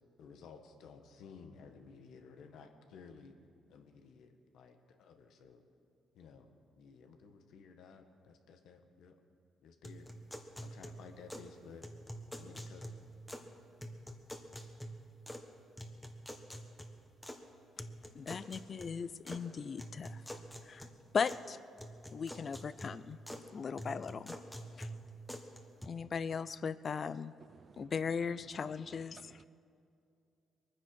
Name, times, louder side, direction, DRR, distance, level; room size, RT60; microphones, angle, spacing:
voice 1, 0.2-3.3 3.7-5.6 6.1-6.5 6.8-9.2 9.6-10.1 10.6-11.9 12.3-12.9, left 5 dB, 80° left, 6 dB, 1.4 m, -55 dB
sound 1, 9.8-11.5 11.8-13.5 13.8-15.5 15.8-17.4 17.8-19.4 19.8-21.5 21.8-23.5 23.8-25.9, equal, 10° left, 1.4 m, -47 dB
voice 2, 18.1-20.2 20.6-20.9 21.1-21.6 22.1-23.2 23.5-24.3 24.8-24.9 25.9-27.3 27.8-29.4, left 6 dB, 45° left, 16 dB, 0.5 m, -38 dB
voice 3, 27.5-27.9 29.1-29.5, right 6 dB, 50° right, 16 dB, 0.5 m, -58 dB
22.0 x 9.9 x 6.4 m, 2.5 s
cardioid pair, 90°, 0 cm